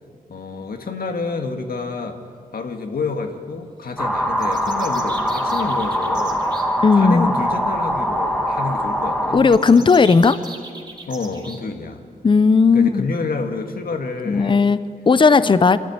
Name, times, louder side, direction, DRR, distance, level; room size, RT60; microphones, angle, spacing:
voice 1, 0.3-2.2 2.5-6.7 7.0-9.9 11.1-12.0 12.7-14.6 15.4-15.7, left 4 dB, 75° left, 4 dB, 1.7 m, -29 dB
sound 1, 4.0-9.4, equal, 5° left, 1.9 m, -22 dB
sound 2, 4.4-6.6 9.5-11.6, right 3 dB, 30° right, 2.4 m, -38 dB
voice 2, 6.8-7.3 9.3-10.4 12.2-13.1 14.3-14.8 15.1-15.8, left 4 dB, 35° left, 14 dB, 0.6 m, -14 dB
25.5 x 14.0 x 9.6 m, 2.2 s
wide cardioid pair, 155°, 15 cm